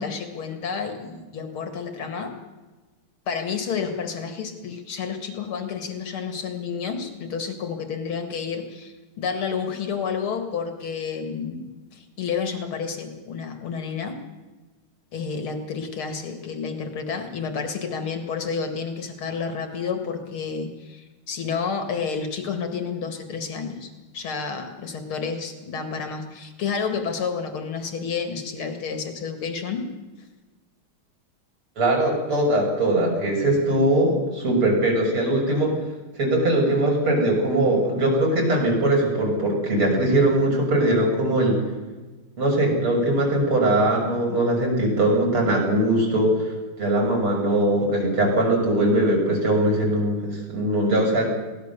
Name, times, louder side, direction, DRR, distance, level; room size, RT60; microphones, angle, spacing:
voice 1, 0.0-2.3 3.3-11.7 11.9-14.2 15.1-29.8, left 6 dB, 80° left, 6 dB, 2.7 m, -30 dB
voice 2, 31.8-35.7 36.2-41.6 42.4-51.3, right 1 dB, 85° right, -1 dB, 7.2 m, -21 dB
22.5 x 17.5 x 6.8 m, 1.2 s
omnidirectional pair, 2.3 m